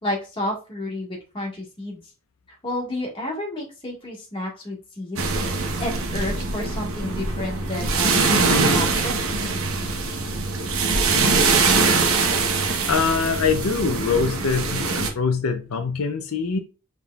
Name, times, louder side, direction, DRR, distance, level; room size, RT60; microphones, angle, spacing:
voice 1, 0.0-2.0 2.6-9.1, left 1 dB, 25° left, -2 dB, 1.5 m, -31 dB
sound 1, 5.2-15.1, right 4 dB, 65° right, 0.9 m, -22 dB
voice 2, 12.9-14.8 15.1-16.6, left 5 dB, 75° left, 6 dB, 0.5 m, -23 dB
5.6 x 3.5 x 2.3 m, 0.33 s
head